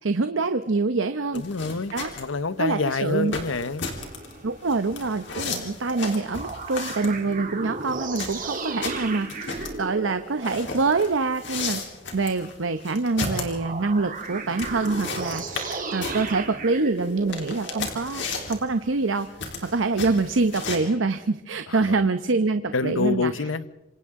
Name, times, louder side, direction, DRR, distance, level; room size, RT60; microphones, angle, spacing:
voice 1, 0.0-1.4 1.9-2.1 2.6-3.3 4.4-11.8 12.1-19.3 19.7-23.3, right 3 dB, 75° right, 9 dB, 0.8 m, -25 dB
voice 2, 1.3-3.9 21.7-22.1 22.7-23.7, left 3 dB, 85° left, 15 dB, 0.8 m, -27 dB
sound 1, 1.3-20.8, left 4 dB, 65° left, 3.6 m, -35 dB
sound 2, 4.0-5.6 5.9-10.7 13.1-17.9, right 3 dB, 45° right, 2.6 m, -35 dB
27.0 x 27.0 x 3.7 m, 1.0 s
head